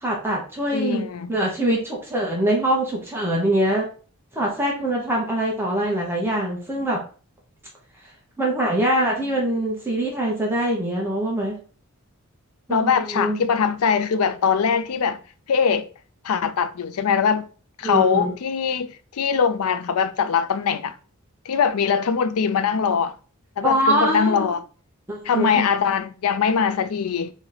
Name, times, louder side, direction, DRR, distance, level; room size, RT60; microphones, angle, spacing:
voice 1, 0.0-3.9 4.3-7.0 8.4-11.6 12.7-13.5 17.8-18.3 23.6-24.5 25.1-25.6, right 1 dB, 10° right, 1.0 m, -23 dB
voice 2, 0.7-1.3 12.7-15.2 15.5-15.9 16.2-17.5 17.8-21.0 21.5-23.1 23.6-24.6 25.3-27.3, left 6 dB, 80° left, 0.4 m, -22 dB
3.9 x 3.1 x 3.9 m
head